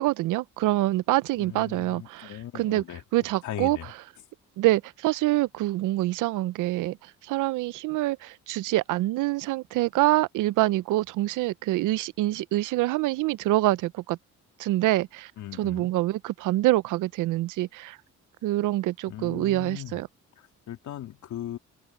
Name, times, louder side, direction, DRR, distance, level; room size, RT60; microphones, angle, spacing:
voice 1, 0.0-2.8 3.1-3.8 4.6-14.2 14.6-15.3 15.6-18.0 18.4-20.1, right 17 dB, 90° right, 0.6 m, -26 dB
voice 2, 1.4-3.0 3.4-3.9 15.4-15.9 19.1-20.0 20.4-21.6, left 11 dB, 75° left, 2.7 m, -38 dB
open air
cardioid pair, 90°, 30 cm